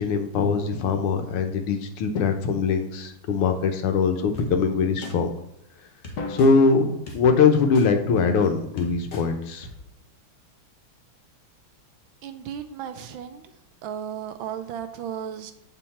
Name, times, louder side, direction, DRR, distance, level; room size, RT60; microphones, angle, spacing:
voice 1, 0.0-5.3 6.3-9.7, left 5 dB, 85° left, 6 dB, 1.8 m, -22 dB
sound 1, 4.3-4.5 5.0-5.1 6.0-6.5 7.1-7.2 7.7-7.9 8.4-8.5 8.8-9.2 9.6-9.7, left 3 dB, 40° left, 1.2 m, -39 dB
Drum, 6.2-8.2, left 3 dB, 70° left, 0.9 m, -39 dB
voice 2, 12.2-13.4 13.8-15.5, right 9 dB, 75° right, 8 dB, 1.3 m, -34 dB
7.9 x 4.5 x 4.2 m, 0.82 s
omnidirectional pair, 2.4 m